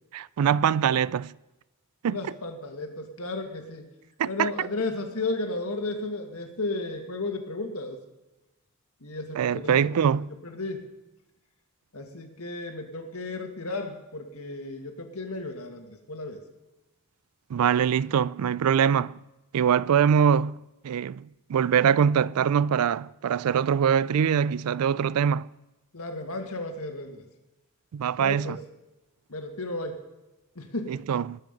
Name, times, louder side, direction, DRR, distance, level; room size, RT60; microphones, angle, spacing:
voice 1, 0.1-1.3 2.0-2.2 4.2-4.5 9.4-10.3 17.5-19.2 19.5-25.5 27.9-28.6 30.9-31.4, right 8 dB, 80° right, 0.4 m, -23 dB
voice 2, 2.0-3.9 4.3-8.0 9.0-10.1 10.4-10.8 11.9-16.4 25.9-27.3 28.2-28.6 29.3-30.0 30.6-31.0, left 2 dB, 75° left, 1.9 m, -34 dB
20.0 x 7.7 x 5.3 m
head